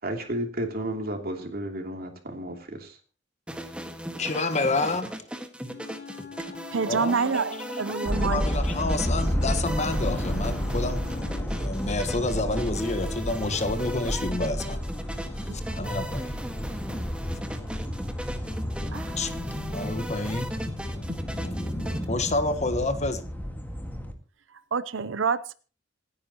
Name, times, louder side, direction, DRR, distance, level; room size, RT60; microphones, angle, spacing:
voice 1, 0.0-3.0, right 1 dB, 55° right, 2.9 m, -32 dB
sound 1, 3.5-22.0, equal, 5° right, 1.7 m, -38 dB
voice 2, 4.2-5.1 6.9-7.2 8.2-14.8 15.8-16.3 19.2-19.3 19.7-20.5 22.1-23.2, left 2 dB, 40° left, 1.4 m, -28 dB
Wind instrument woodwind instrument, 5.6-11.6, left 6 dB, 55° left, 1.1 m, -43 dB
voice 3, 6.7-8.4 18.9-19.2 24.7-25.5, right 5 dB, 90° right, 0.7 m, -27 dB
sound 2, 8.1-24.1, equal, 10° left, 1.8 m, -31 dB
27.0 x 9.8 x 3.0 m
head